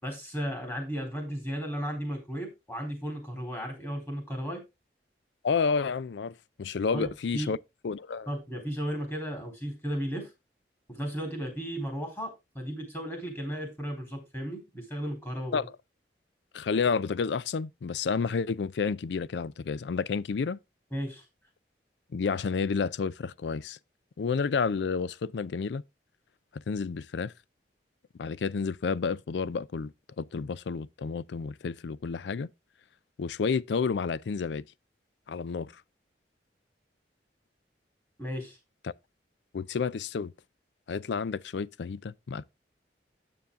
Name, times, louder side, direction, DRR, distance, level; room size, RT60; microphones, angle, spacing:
voice 1, 0.0-4.6 6.9-7.5 8.3-10.3 10.9-12.3 12.5-15.7 20.9-21.2 38.2-38.6, equal, 15° left, 3.9 m, -35 dB
voice 2, 5.4-7.6 7.8-8.3 15.5-15.6 16.5-20.6 22.1-23.8 24.2-25.8 26.5-27.3 28.2-32.5 33.2-34.6 35.3-35.7 38.8-38.9 39.5-40.3 40.9-42.4, left 5 dB, 80° left, 0.4 m, -30 dB
9.4 x 7.1 x 3.5 m
head